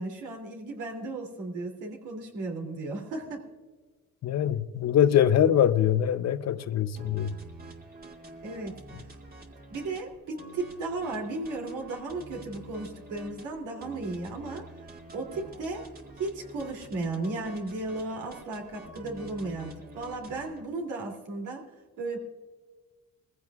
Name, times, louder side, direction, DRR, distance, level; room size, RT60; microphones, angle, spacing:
voice 1, 0.0-3.4 8.4-8.7 9.7-14.6 15.1-15.8 16.2-21.6 22.0-22.2, right 2 dB, 80° right, 3.0 m, -35 dB
voice 2, 4.2-7.3, left 10 dB, 60° left, 0.7 m, -23 dB
sound 1, 7.0-20.7, right 1 dB, 30° right, 1.9 m, -47 dB
21.0 x 15.5 x 2.4 m
cardioid pair, 90°, 30 cm